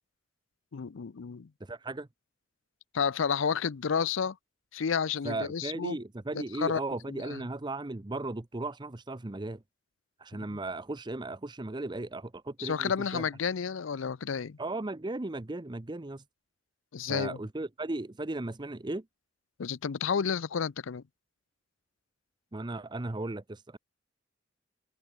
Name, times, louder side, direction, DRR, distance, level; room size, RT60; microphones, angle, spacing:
voice 1, 0.7-1.5 2.9-4.4 4.7-6.0 6.3-6.8 7.1-7.4 10.3-10.6 12.6-14.6 16.9-17.4 19.6-21.0, left 6 dB, 70° left, 0.5 m, -31 dB
voice 2, 1.6-2.1 5.2-9.6 10.2-13.3 14.6-16.2 17.1-19.0 22.5-23.8, right 2 dB, 20° right, 0.7 m, -36 dB
head